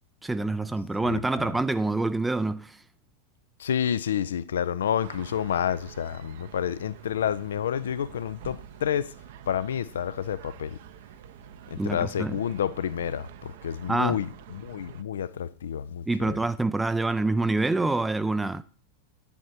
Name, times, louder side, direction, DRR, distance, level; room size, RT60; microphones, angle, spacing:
voice 1, 0.2-2.8 11.8-12.4 13.9-14.2 16.1-18.6, right 2 dB, 5° right, 0.4 m, -26 dB
voice 2, 1.0-1.5 3.6-9.1 9.5-10.8 11.7-16.4, left 9 dB, 65° left, 0.3 m, -29 dB
sound 1, 5.0-15.0, right 9 dB, 55° right, 0.6 m, -47 dB
10.5 x 9.6 x 2.8 m
figure-of-eight pair, 90°, 0 cm